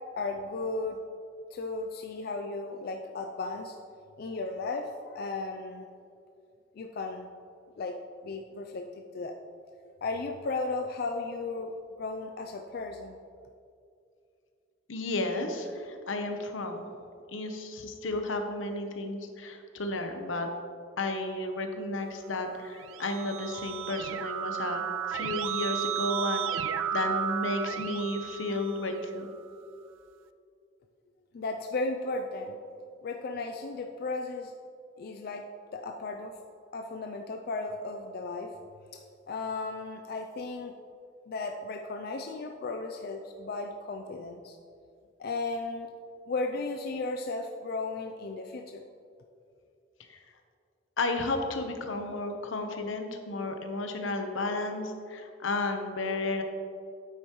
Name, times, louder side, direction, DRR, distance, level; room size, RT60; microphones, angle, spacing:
voice 1, 0.2-1.0 1.5-3.8 4.2-5.9 6.8-7.3 7.8-8.0 8.2-9.4 10.0-11.7 12.0-13.2 31.3-32.6 33.0-34.5 35.0-36.3 36.7-38.5 38.9-39.0 39.3-40.7 41.3-44.6 45.2-45.9 46.3-48.8, left 3 dB, 50° left, 4 dB, 0.4 m, -35 dB
voice 2, 14.9-16.9 17.3-20.5 21.0-29.3 50.1-50.2 51.0-56.4, left 2 dB, 85° left, 5 dB, 0.9 m, -33 dB
Keyboard (musical), 22.6-29.3, right 8 dB, 85° right, 0.3 m, -34 dB
9.3 x 7.9 x 3.1 m, 2.5 s
head